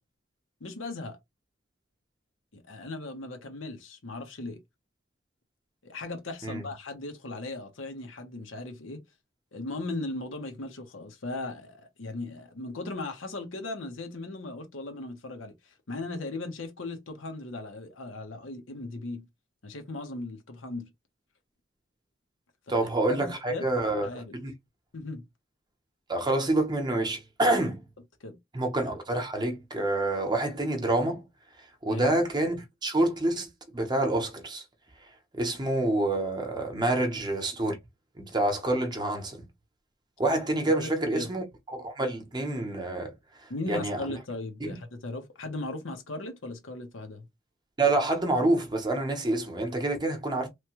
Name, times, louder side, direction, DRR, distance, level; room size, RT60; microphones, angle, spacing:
voice 1, 0.6-1.2 2.5-4.6 5.8-9.0 9.5-19.3 19.6-20.9 22.8-23.7 24.0-24.4 24.9-25.3 28.2-28.4 31.9-32.1 36.7-36.9 40.7-41.3 43.5-47.3, left 2 dB, 85° left, 0.9 m, -38 dB
voice 2, 22.7-24.1 24.3-24.5 26.1-27.8 28.5-31.2 31.8-34.6 35.3-37.8 38.2-39.5 40.2-43.1 43.7-44.0 44.6-44.8 47.8-50.5, right 2 dB, 20° right, 0.8 m, -27 dB
3.2 x 2.2 x 2.9 m
head